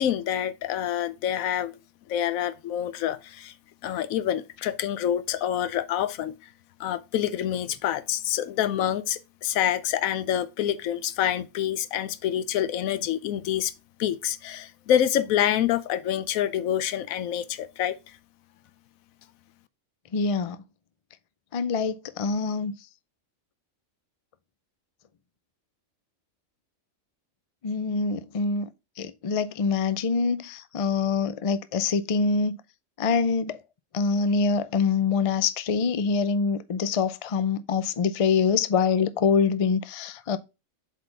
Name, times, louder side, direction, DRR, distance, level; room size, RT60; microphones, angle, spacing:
voice 1, 0.0-1.7 2.1-3.5 3.8-6.3 6.8-13.7 14.0-18.0, left 10 dB, 85° left, 1.0 m, -27 dB
voice 2, 20.1-20.6 21.5-22.7 27.6-28.7 29.0-32.6 33.0-33.6 33.9-40.4, left 5 dB, 60° left, 0.3 m, -25 dB
7.9 x 4.3 x 3.2 m
omnidirectional pair, 1.4 m